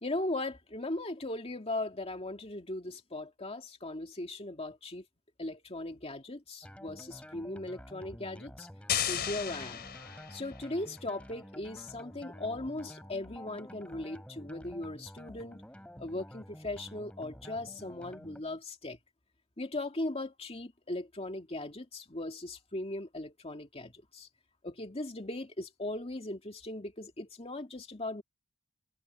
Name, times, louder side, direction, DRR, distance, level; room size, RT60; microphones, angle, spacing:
voice 1, 0.0-5.0 5.4-8.7 9.0-9.8 10.3-15.6 16.0-19.0 19.6-24.3 24.6-28.2, left 2 dB, 25° left, 2.4 m, -38 dB
sound 1, 6.6-18.4, equal, 5° left, 4.3 m, -50 dB
sound 2, 8.9-10.7, left 9 dB, 50° left, 3.8 m, -34 dB
head